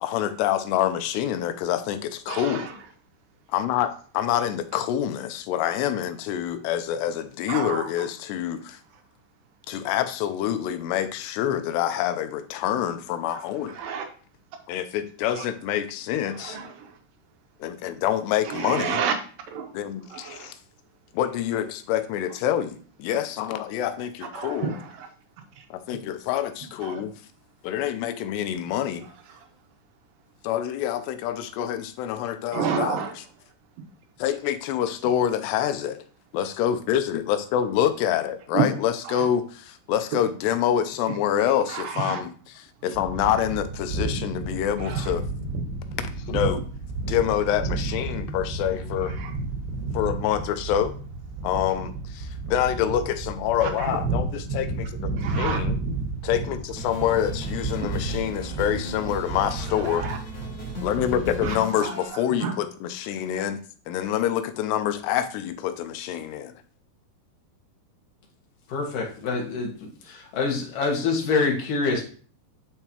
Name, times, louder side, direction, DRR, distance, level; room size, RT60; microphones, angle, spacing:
voice 1, 0.0-2.7 3.5-8.8 9.7-13.8 14.7-16.6 17.6-19.0 19.7-20.6 21.1-24.7 25.7-27.1 27.6-29.1 30.4-33.0 34.2-35.9 36.3-42.3 42.8-45.2 46.0-46.6 47.1-49.2 49.9-50.9 51.4-55.8 56.2-60.1 60.8-63.6 63.9-66.5, left 10 dB, 85° left, 10 dB, 2.8 m, -26 dB
voice 2, 2.3-2.8 7.5-8.1 8.9-9.0 13.3-14.1 15.3-15.5 16.1-17.0 18.4-19.1 19.5-19.7 20.0-20.5 24.3-25.1 25.6-25.7 26.8-27.0 29.0-29.5 32.5-33.2 35.5-35.6 38.5-38.7 39.0-39.3 41.7-42.2 42.9-43.0 44.8-45.2 46.3-46.5 49.0-49.3 53.6-54.0 55.2-55.6 59.6-60.2 61.4-62.5, right 7 dB, 70° right, 4 dB, 2.4 m, -31 dB
sound 1, 42.9-61.6, right 3 dB, 90° right, 3.5 m, -32 dB
sound 2, 56.7-62.1, left 1 dB, 25° left, 1.3 m, -38 dB
voice 3, 68.7-72.1, left 4 dB, 60° left, 0 dB, 2.9 m, -26 dB
10.5 x 4.5 x 2.9 m, 0.42 s
omnidirectional pair, 4.8 m